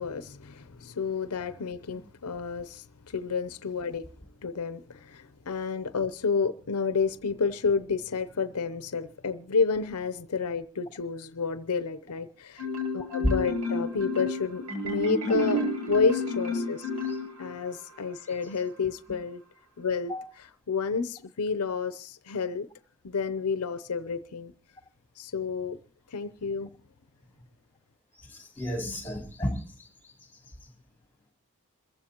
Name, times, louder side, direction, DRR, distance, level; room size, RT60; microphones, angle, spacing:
voice 1, 0.0-4.0 4.4-12.7 12.9-16.9 17.4-19.4 19.8-20.1 20.7-22.7 23.0-24.5 25.2-25.8 26.1-26.7, left 5 dB, 80° left, 0.7 m, -30 dB
Marimba xylophone, 12.6-17.7, left 2 dB, 70° right, 7.6 m, -30 dB
voice 2, 28.1-30.7, equal, 10° left, 6.7 m, -33 dB
27.0 x 15.0 x 2.9 m
head